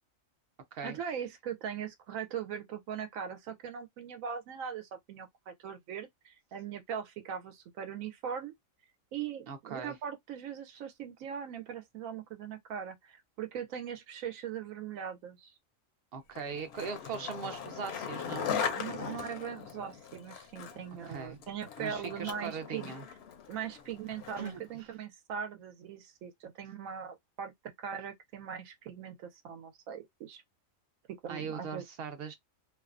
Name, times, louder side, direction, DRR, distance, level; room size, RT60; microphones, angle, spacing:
voice 1, 0.8-8.5 9.1-15.5 18.5-22.9 23.5-26.3 26.6-30.4 31.1-31.8, right 8 dB, 90° right, 1.0 m, -40 dB
voice 2, 9.5-10.0 16.1-18.5 21.1-21.4 21.8-23.0 24.4-24.9 31.3-32.3, right 5 dB, 60° right, 0.7 m, -40 dB
Skateboard, 16.4-24.7, left 7 dB, 65° left, 0.7 m, -39 dB
2.6 x 2.1 x 2.4 m
omnidirectional pair, 1.4 m